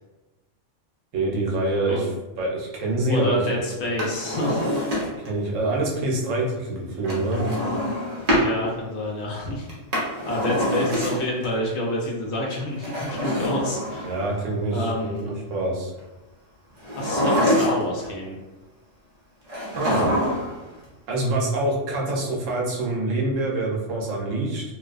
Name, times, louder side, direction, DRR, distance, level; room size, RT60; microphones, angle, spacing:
voice 1, 1.1-2.1 2.4-3.4 5.2-7.4 14.0-15.9 19.8-20.1 21.1-24.6, right 2 dB, 80° right, -2 dB, 1.0 m, -25 dB
voice 2, 3.1-4.6 8.3-9.7 10.3-14.1 14.7-15.3 17.0-18.3, left 1 dB, 70° left, -2 dB, 0.8 m, -28 dB
Drawer open or close, 3.8-5.4 7.0-8.5 9.7-11.5 12.7-14.4 16.8-18.1 19.5-20.6 20.9-21.0, equal, 40° right, 0.6 m, -25 dB
2.5 x 2.1 x 2.3 m, 1.1 s
omnidirectional pair, 1.3 m